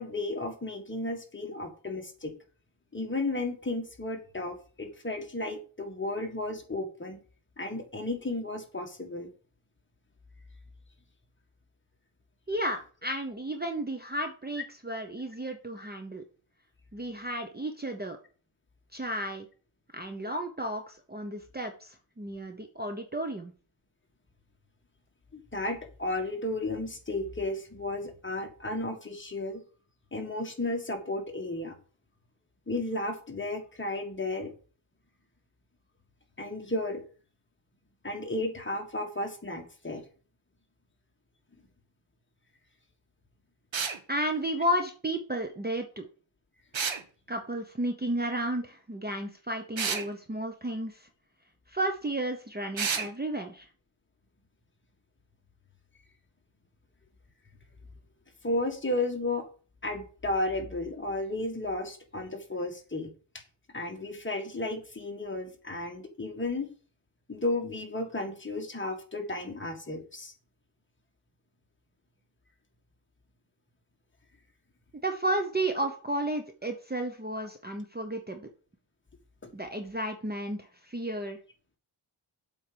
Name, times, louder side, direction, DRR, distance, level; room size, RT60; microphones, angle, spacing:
voice 1, 0.0-2.3 2.9-7.2 7.6-9.3 25.3-29.6 30.1-31.7 32.7-34.5 36.4-37.0 38.0-40.0 58.4-59.4 59.8-63.1 63.7-66.7 67.3-70.3 79.4-79.5, left 2 dB, 25° left, 3 dB, 1.7 m, -33 dB
voice 2, 12.5-16.2 16.9-18.2 18.9-19.5 19.9-23.5 44.1-46.1 47.3-51.1 51.7-53.7 74.9-78.5 79.5-81.4, right 1 dB, 20° right, 5 dB, 0.9 m, -33 dB
sound 1, 43.7-44.0 46.7-47.0 49.8-50.1 52.8-53.1, right 6 dB, 65° right, 1.3 m, -30 dB
7.8 x 4.7 x 6.8 m, 0.38 s
wide cardioid pair, 145°, 49 cm